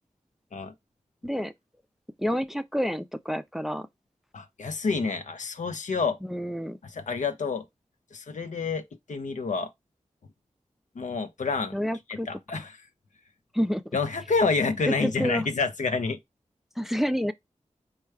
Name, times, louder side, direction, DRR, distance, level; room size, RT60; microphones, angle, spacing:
voice 1, 1.2-1.5 2.2-3.9 6.3-6.8 11.7-12.4 13.5-13.8 14.9-15.5 16.8-17.3, equal, ahead, 0.4 m, -28 dB
voice 2, 4.3-6.2 6.8-7.7 8.1-9.7 11.0-11.8 12.1-12.7 13.9-16.2, left 4 dB, 85° left, 0.6 m, -28 dB
4.4 x 2.2 x 4.7 m
wide cardioid pair, 80°, 12 cm